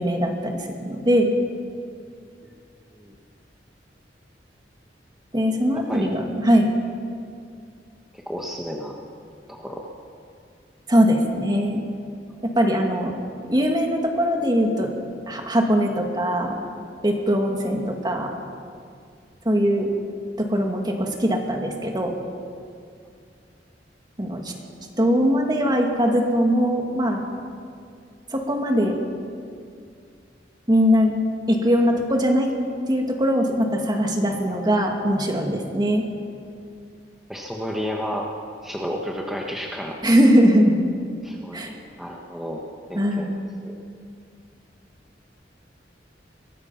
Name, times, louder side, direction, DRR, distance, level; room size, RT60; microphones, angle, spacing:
voice 1, 0.0-1.3 5.3-6.7 10.9-11.9 12.4-13.1 13.5-14.9 15.3-16.6 17.0-18.3 19.4-19.9 20.4-22.1 24.2-24.5 25.0-27.2 28.3-29.0 30.7-31.1 31.5-32.5 32.9-36.0 40.0-40.8 41.5-41.7 42.9-43.4, equal, 25° right, 2 dB, 2.4 m, -21 dB
voice 2, 8.1-9.0 9.5-9.9 37.3-38.3 38.6-40.0 41.2-41.6 42.0-42.6 42.9-43.7, equal, ahead, -1 dB, 1.4 m, -31 dB
23.0 x 19.5 x 5.8 m, 2.3 s
head